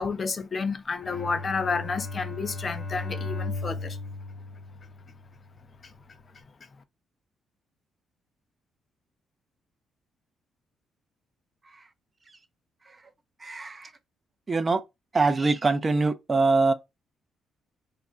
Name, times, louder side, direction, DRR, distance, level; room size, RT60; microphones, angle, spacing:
voice 1, 0.0-4.0, left 4 dB, 40° left, 0.4 m, -30 dB
Bowed string instrument, 1.0-5.4, left 3 dB, 55° left, 1.0 m, -36 dB
voice 2, 13.4-13.9 14.5-14.8 15.1-16.7, right 3 dB, 30° right, 0.4 m, -23 dB
2.4 x 2.1 x 3.5 m
cardioid pair, 90°, 0 cm